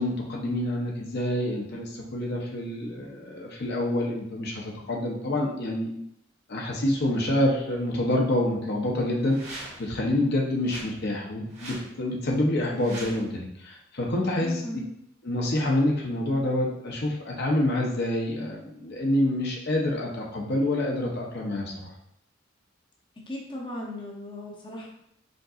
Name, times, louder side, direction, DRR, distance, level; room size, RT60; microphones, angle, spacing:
voice 1, 0.0-5.9 6.5-14.6 15.2-21.9, left 1 dB, 55° left, -2 dB, 0.7 m, -27 dB
sound 1, 9.2-9.9 10.6-10.9 11.5-11.9 12.7-13.3, right 2 dB, 35° right, 1.1 m, -41 dB
voice 2, 14.4-14.9 23.3-24.9, left 1 dB, 25° left, -2 dB, 0.8 m, -37 dB
5.2 x 3.8 x 2.4 m, 0.77 s
head